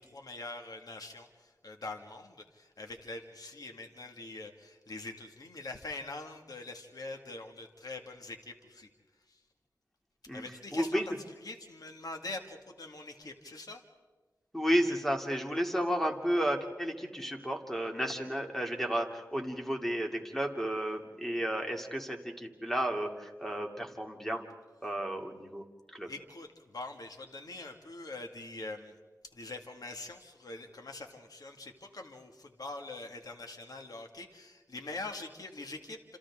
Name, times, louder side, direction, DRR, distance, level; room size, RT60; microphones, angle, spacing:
voice 1, 0.0-8.9 9.3-9.4 10.3-11.0 11.4-13.8 26.0-29.0 29.3-36.2, left 2 dB, 70° left, 4 dB, 2.1 m, -44 dB
voice 2, 10.7-11.0 14.5-24.4 24.8-25.6 25.9-26.1, equal, 5° left, 2 dB, 2.9 m, -32 dB
30.0 x 28.0 x 3.7 m, 1.3 s
wide cardioid pair, 55°, 7 cm